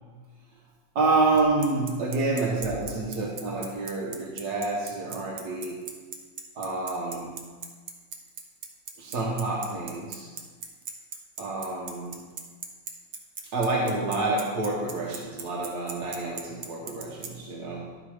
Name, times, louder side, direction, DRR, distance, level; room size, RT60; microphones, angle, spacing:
voice 1, 0.9-5.9 6.6-7.5 9.0-10.3 11.4-12.3 13.5-18.0, right 3 dB, 85° right, -2 dB, 1.7 m, -28 dB
Bicycle, 1.4-17.3, right 6 dB, 60° right, 1.2 m, -37 dB
11.0 x 4.8 x 4.8 m, 1.5 s
omnidirectional pair, 1.7 m